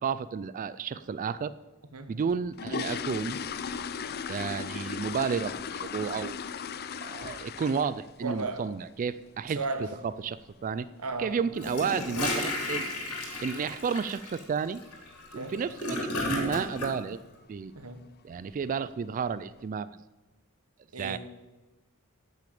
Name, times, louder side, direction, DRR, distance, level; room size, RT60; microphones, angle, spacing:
voice 1, 0.0-1.5 2.1-3.4 4.3-6.4 7.0-9.6 10.0-10.9 11.2-12.9 13.4-14.8 15.3-17.2 17.5-17.7 18.2-19.9 21.0-21.2, right 6 dB, 35° right, 15 dB, 0.3 m, -32 dB
sound 1, 2.2-8.1 8.4-8.7 9.0-9.1 9.5-9.6 10.0-10.2 10.5-10.6 11.2-11.3 11.5-11.7 12.2-12.5 12.8-12.9 13.3-13.5 13.8-13.9 14.3-14.4 15.1-15.4 15.7-16.0 16.4-16.5 16.9-17.0 17.8-17.9 18.3-18.8 19.3-19.4, left 6 dB, 45° left, 0.5 m, -37 dB
voice 2, 8.2-8.7 9.5-9.9 11.0-11.4 15.3-15.5 17.7-18.0 20.9-21.2, right 3 dB, 80° right, 9 dB, 1.3 m, -34 dB
Gurgling / Toilet flush, 11.5-16.9, left 2 dB, 85° left, 3.0 m, -33 dB
10.0 x 6.5 x 8.6 m, 1.1 s
head